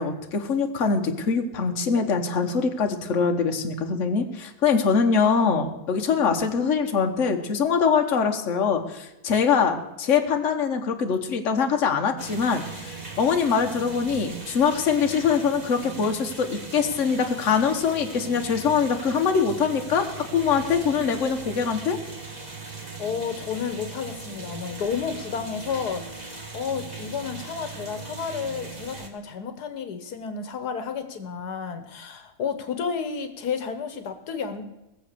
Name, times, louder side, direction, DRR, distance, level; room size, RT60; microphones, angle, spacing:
voice 1, 0.0-20.1 20.3-22.0, left 6 dB, 50° left, 4 dB, 1.4 m, -23 dB
sound 1, 12.2-29.1, right 4 dB, 25° right, 1.7 m, -39 dB
voice 2, 23.0-34.6, left 6 dB, 80° left, 10 dB, 1.6 m, -31 dB
18.5 x 7.3 x 6.7 m, 0.95 s
omnidirectional pair, 1.7 m